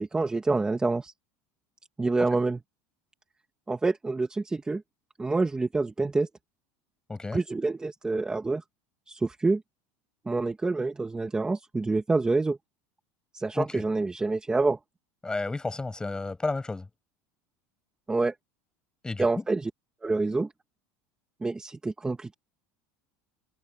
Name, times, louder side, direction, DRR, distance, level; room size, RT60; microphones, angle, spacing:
voice 1, 0.1-1.1 2.0-2.6 3.7-4.8 5.2-6.3 7.3-8.6 9.1-9.6 10.3-12.6 13.3-14.8 18.1-18.3 19.2-19.7 20.0-20.5 21.4-22.3, right 3 dB, 10° right, 1.4 m, -27 dB
voice 2, 7.1-7.4 13.5-13.8 15.2-16.9 19.0-19.4, left 3 dB, 10° left, 7.0 m, -32 dB
supercardioid pair, 125°, 7 cm